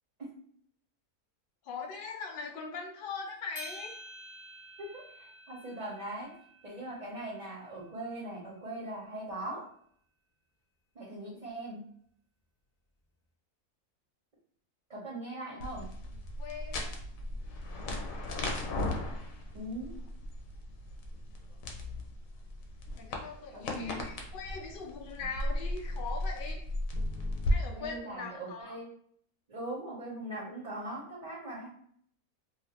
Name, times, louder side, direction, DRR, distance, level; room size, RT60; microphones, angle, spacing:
voice 1, 1.6-4.0 16.4-17.0 22.9-26.6 27.5-28.8, left 5 dB, 85° left, 2 dB, 0.4 m, -41 dB
sound 1, 3.6-8.0, equal, 45° left, 0.7 m, -50 dB
voice 2, 4.8-6.3 6.6-9.7 10.9-11.8 14.9-15.9 19.5-19.9 23.5-24.0 27.7-28.9 29.5-31.7, right 1 dB, 35° right, -7 dB, 0.8 m, -40 dB
sound 2, 15.6-27.5, left 1 dB, 70° left, 1.0 m, -36 dB
3.2 x 2.6 x 2.8 m, 0.63 s
omnidirectional pair, 1.6 m